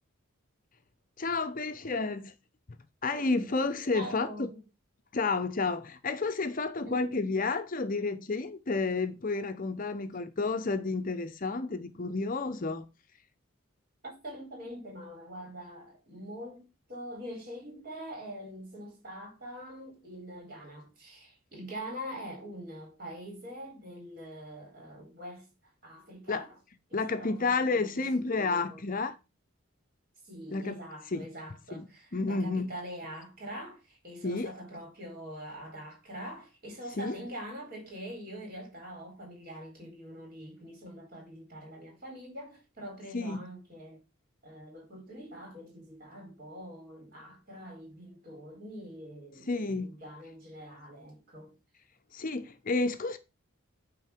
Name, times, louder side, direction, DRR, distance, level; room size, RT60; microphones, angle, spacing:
voice 1, 1.2-2.3 2.7-4.5 5.1-12.9 26.3-26.5 26.9-29.2 30.5-30.8 31.1-31.3 31.7-32.7 34.2-34.5 37.0-37.2 43.1-43.4 49.5-50.0 52.1-53.2, left 3 dB, 40° left, 0.7 m, -31 dB
voice 2, 3.9-4.6 6.8-7.1 14.0-25.5 25.8-26.6 26.9-28.1 28.3-28.8 30.2-44.0 44.4-51.6, equal, 45° right, 4.3 m, -44 dB
9.3 x 3.8 x 5.8 m
head